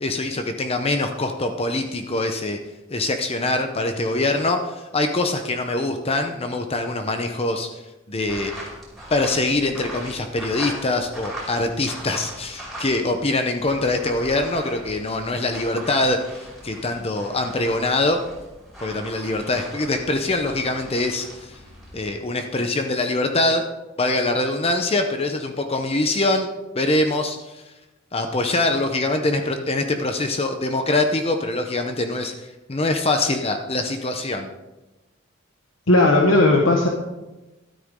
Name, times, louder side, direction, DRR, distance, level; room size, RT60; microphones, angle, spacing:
voice 1, 0.0-2.6 2.9-7.7 8.1-8.5 9.1-16.2 16.6-18.2 18.8-21.6 21.9-23.6 24.0-27.6 28.1-34.5, left 2 dB, 30° left, 6 dB, 0.8 m, -23 dB
sound 1, 8.2-13.3 13.5-22.1, right 1 dB, ahead, 5.3 m, -40 dB
voice 2, 35.9-36.9, left 2 dB, 90° left, 0 dB, 1.4 m, -16 dB
13.0 x 13.0 x 3.7 m, 1.1 s
head